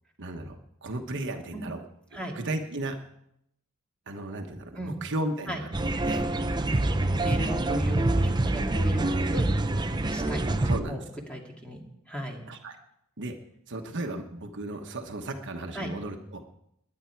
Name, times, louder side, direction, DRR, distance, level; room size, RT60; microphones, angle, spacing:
voice 1, 0.2-1.8 2.1-3.0 4.1-5.7 6.1-6.3 7.4-7.6 10.6-11.0 12.5-12.8 13.2-13.4 13.7-16.4, right 2 dB, 55° right, 4 dB, 1.2 m, -35 dB
sound 1, 5.7-10.8, right 2 dB, 20° right, 0.6 m, -26 dB
voice 2, 6.6-9.6 10.1-10.6 10.9-11.8 12.1-12.4 15.7-15.9, equal, 5° left, 0 dB, 2.4 m, -36 dB
21.0 x 9.8 x 4.6 m, 0.77 s
head